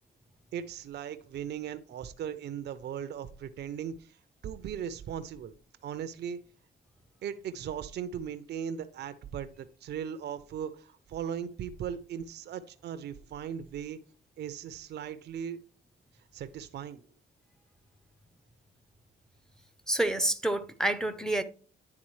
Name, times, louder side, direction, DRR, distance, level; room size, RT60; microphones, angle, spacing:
voice 1, 0.5-4.2 4.4-5.5 5.8-6.4 7.2-14.0 14.4-15.6 16.3-17.0, right 8 dB, 60° right, 0.5 m, -38 dB
voice 2, 19.9-21.4, right 1 dB, 5° left, 0.5 m, -28 dB
9.8 x 3.6 x 3.1 m
cardioid pair, 90°, 20 cm